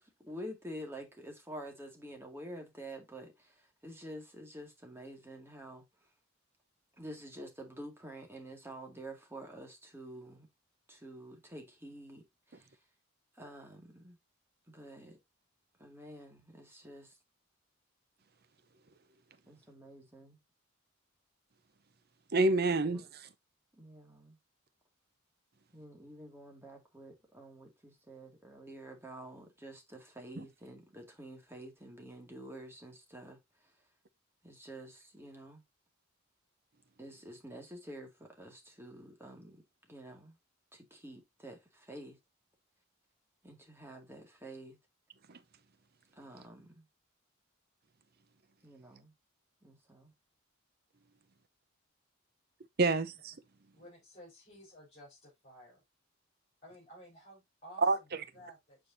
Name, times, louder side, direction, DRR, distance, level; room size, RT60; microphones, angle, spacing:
voice 1, 0.0-5.9 7.0-10.5 10.9-12.7 13.3-14.2 14.7-15.2 15.8-17.2 19.5-20.4 22.7-23.0 23.7-24.4 25.7-33.7 34.4-35.6 37.0-39.6 39.9-40.4 40.7-42.2 43.4-44.8 46.1-46.8 48.6-49.1 49.6-50.1, right 1 dB, 10° right, 2.0 m, -49 dB
voice 2, 22.3-23.3 30.4-30.5 45.3-45.4 52.8-53.3 57.8-58.2, right 3 dB, 50° right, 0.7 m, -29 dB
voice 3, 53.7-55.8 56.6-57.8 58.3-58.9, equal, 35° left, 5.1 m, -54 dB
8.6 x 4.7 x 2.6 m
head